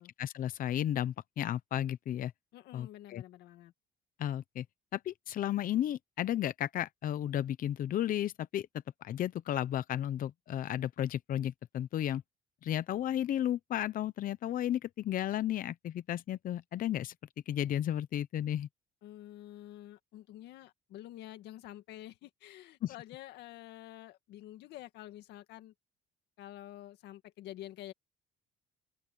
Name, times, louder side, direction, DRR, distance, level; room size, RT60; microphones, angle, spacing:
voice 1, 0.0-2.3 2.7-3.2 4.2-4.6 4.9-8.7 9.0-12.2 12.6-17.1 17.5-18.7 22.8-22.9, left 11 dB, 55° left, 0.8 m, -33 dB
voice 2, 2.5-3.7 19.0-25.7 26.4-27.9, left 14 dB, 80° left, 2.0 m, -48 dB
open air
cardioid pair, 110°, 17 cm